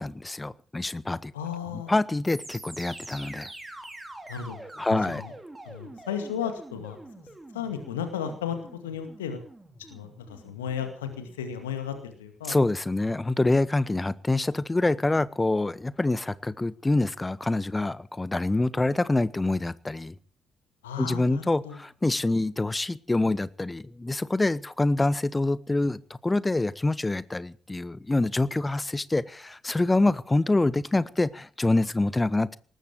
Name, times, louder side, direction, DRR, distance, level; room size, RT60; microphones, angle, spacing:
voice 1, 0.0-1.3 1.7-3.5 4.8-5.2 12.5-20.1 21.0-32.6, left 2 dB, 20° left, 19 dB, 1.0 m, -26 dB
voice 2, 1.3-1.9 4.3-4.6 4.9-5.3 5.6-7.0 7.5-9.4 9.9-12.6 20.8-21.8, left 8 dB, 80° left, 7 dB, 2.1 m, -34 dB
sound 1, 2.2-12.3, right 1 dB, 15° right, 4.4 m, -45 dB
19.0 x 14.5 x 4.8 m, 0.42 s
figure-of-eight pair, 40°, 0 cm